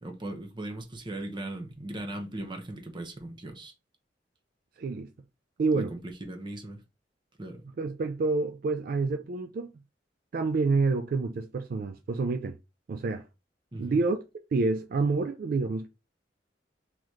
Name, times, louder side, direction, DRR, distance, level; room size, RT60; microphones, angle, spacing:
voice 1, 0.0-3.7 5.7-6.8 7.4-7.6 13.7-14.0, right 1 dB, 25° right, 0.7 m, -38 dB
voice 2, 4.8-5.1 5.6-5.9 7.8-9.7 10.3-12.6 12.9-13.3 13.8-14.2 14.5-15.9, right 3 dB, 55° right, 0.4 m, -28 dB
3.9 x 2.9 x 3.1 m
head